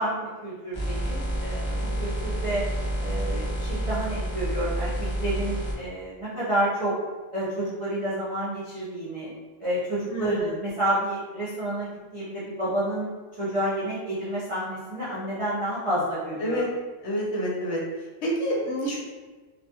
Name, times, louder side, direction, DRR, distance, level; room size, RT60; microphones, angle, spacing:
voice 1, 0.0-2.6 3.0-6.9 7.3-9.3 9.6-13.1 13.4-16.7, right 1 dB, 50° right, -10 dB, 0.3 m, -29 dB
sound 1, 0.7-5.8, right 1 dB, 35° left, 0.4 m, -29 dB
voice 2, 10.1-10.5 16.4-16.7 17.0-17.8 18.2-19.0, equal, 70° left, -4 dB, 0.9 m, -28 dB
2.4 x 2.2 x 2.7 m, 1.3 s
omnidirectional pair, 1.3 m